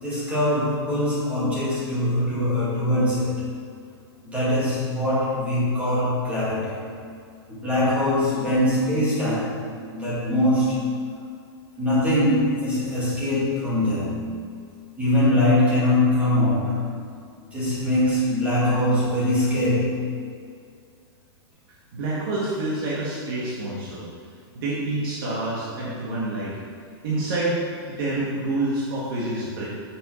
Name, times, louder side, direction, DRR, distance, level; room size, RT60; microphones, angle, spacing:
voice 1, 0.0-3.4 4.2-6.8 7.5-9.6 9.9-10.9 11.8-14.3 15.0-16.8 17.5-20.0, left 1 dB, 10° right, -9 dB, 2.1 m, -22 dB
voice 2, 21.9-24.0 24.5-26.6 27.0-27.6 27.9-29.6, right 2 dB, 55° right, -8 dB, 2.0 m, -27 dB
9.7 x 6.8 x 3.3 m, 2.2 s
supercardioid pair, 170°, 14 cm